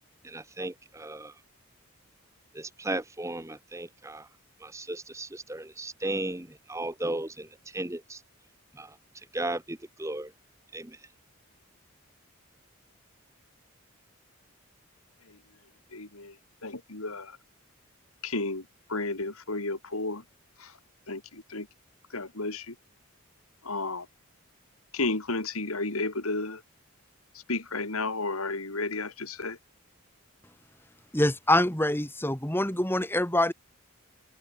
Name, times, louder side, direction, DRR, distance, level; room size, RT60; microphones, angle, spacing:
voice 1, 0.2-1.3 2.5-4.3 4.6-8.2 8.7-10.3 10.7-11.1, right 2 dB, 15° right, 1.1 m, -35 dB
voice 2, 15.9-16.4 16.6-17.4 18.2-20.2 20.6-20.8 21.1-21.7 22.1-22.7 23.6-24.1 24.9-26.6 27.3-29.6, left 3 dB, 80° left, 3.4 m, -32 dB
voice 3, 31.1-33.5, left 1 dB, 10° left, 3.0 m, -25 dB
head